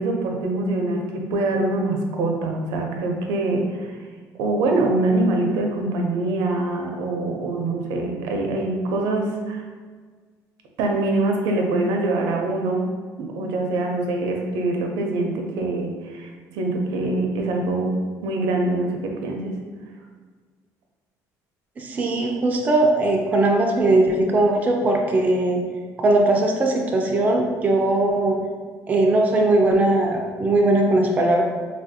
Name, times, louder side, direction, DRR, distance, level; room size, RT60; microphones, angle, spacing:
voice 1, 0.0-4.0 4.4-9.6 10.8-12.9 13.2-19.5, right 2 dB, 80° right, 2 dB, 0.5 m, -24 dB
voice 2, 21.8-25.6 26.0-28.4 28.9-31.4, right 2 dB, 20° right, 1 dB, 0.3 m, -19 dB
3.2 x 2.4 x 2.6 m, 1.5 s
cardioid pair, 140°, 7 cm